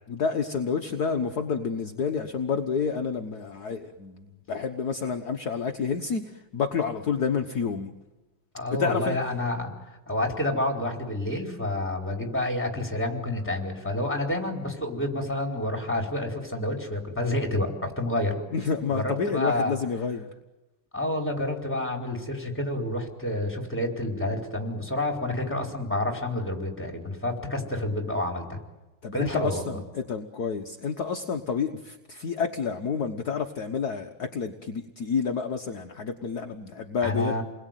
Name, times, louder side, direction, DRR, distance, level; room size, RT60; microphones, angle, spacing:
voice 1, 0.1-8.0 8.8-9.2 18.5-20.3 29.0-37.4, left 6 dB, 50° left, 5 dB, 1.6 m, -29 dB
voice 2, 8.5-18.3 18.9-19.7 20.9-28.6 29.1-29.8 37.0-37.4, left 1 dB, 5° left, 3 dB, 4.7 m, -29 dB
29.5 x 21.5 x 9.3 m, 1.1 s
omnidirectional pair, 2.3 m